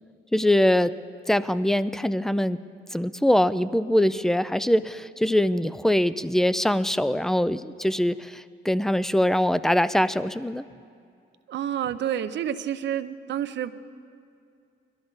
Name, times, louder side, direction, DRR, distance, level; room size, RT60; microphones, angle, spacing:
voice 1, 0.3-1.0 1.3-2.6 2.9-10.7, left 1 dB, ahead, 15 dB, 0.4 m, -23 dB
voice 2, 11.5-13.7, right 10 dB, 65° right, 12 dB, 0.7 m, -29 dB
21.5 x 13.5 x 4.0 m, 2.5 s
cardioid pair, 90°, 20 cm